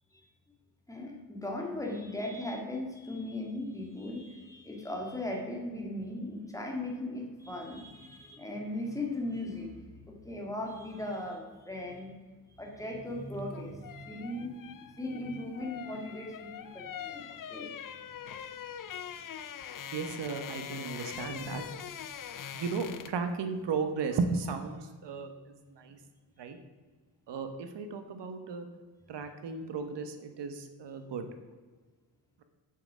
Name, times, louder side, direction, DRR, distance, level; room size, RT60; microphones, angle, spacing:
voice 1, 0.9-12.1 12.6-17.9, left 1 dB, 10° left, 0 dB, 2.0 m, -38 dB
sound 1, 13.3-23.3 23.6-23.8, left 9 dB, 50° left, 0.7 m, -43 dB
voice 2, 19.9-21.6 22.5-26.0 26.4-26.6 27.3-28.7 29.1-31.3, right 5 dB, 90° right, 7 dB, 1.2 m, -35 dB
7.7 x 7.2 x 6.2 m, 1.4 s
wide cardioid pair, 145°, 41 cm